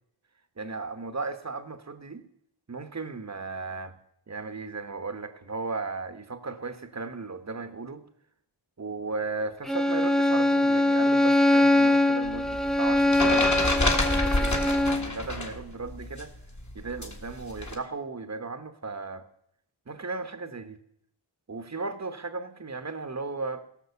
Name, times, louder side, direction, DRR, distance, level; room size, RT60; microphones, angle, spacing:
voice 1, 0.6-2.3 2.7-4.0 4.3-8.1 8.8-16.3 16.7-19.3 19.9-20.8 21.5-23.6, right 3 dB, 35° right, 10 dB, 1.1 m, -36 dB
Bowed string instrument, 9.7-15.1, left 1 dB, ahead, 0.6 m, -22 dB
sound 1, 12.3-15.6 15.9-17.8, left 2 dB, 35° left, 1.9 m, -28 dB
17.0 x 6.0 x 7.0 m, 0.72 s
wide cardioid pair, 85°, 49 cm